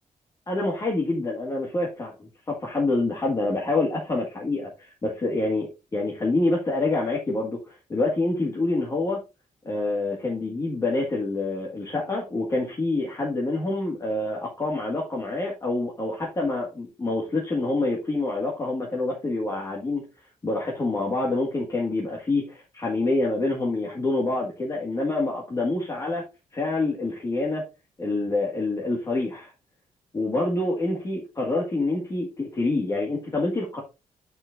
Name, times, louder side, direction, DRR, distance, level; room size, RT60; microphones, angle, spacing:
voice 1, 0.5-9.2 9.6-20.0 20.4-26.2 26.5-27.6 28.0-29.5 30.1-33.8, left 2 dB, 25° left, -2 dB, 1.8 m, -26 dB
9.6 x 6.8 x 2.5 m, 0.27 s
wide cardioid pair, 175°, 14 cm